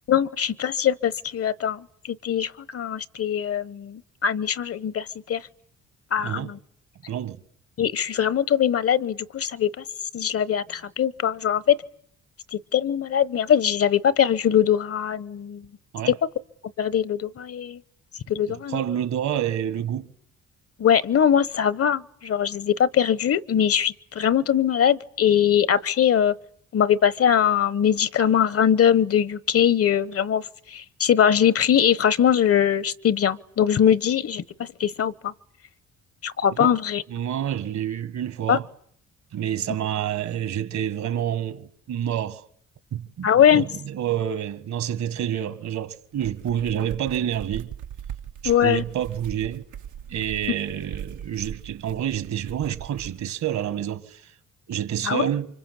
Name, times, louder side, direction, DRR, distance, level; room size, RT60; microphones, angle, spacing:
voice 1, 0.1-5.4 6.1-6.6 7.8-9.8 10.1-11.8 12.5-15.7 16.1-16.2 16.8-17.8 18.3-18.8 20.8-26.3 26.7-35.3 36.2-37.0 38.5-38.6 43.2-43.6 48.4-48.8 55.0-55.3, left 9 dB, 50° left, 1.1 m, -22 dB
voice 2, 6.2-6.5 7.1-7.4 15.9-16.1 18.5-20.1 36.5-36.8 37.1-38.7 39.3-42.4 42.9-47.7 48.4-49.6 50.1-54.3 54.7-55.5, right 10 dB, 65° right, 2.0 m, -28 dB
sound 1, 46.0-53.2, right 9 dB, 80° right, 1.3 m, -39 dB
29.0 x 25.0 x 8.3 m
cardioid pair, 90°, 30 cm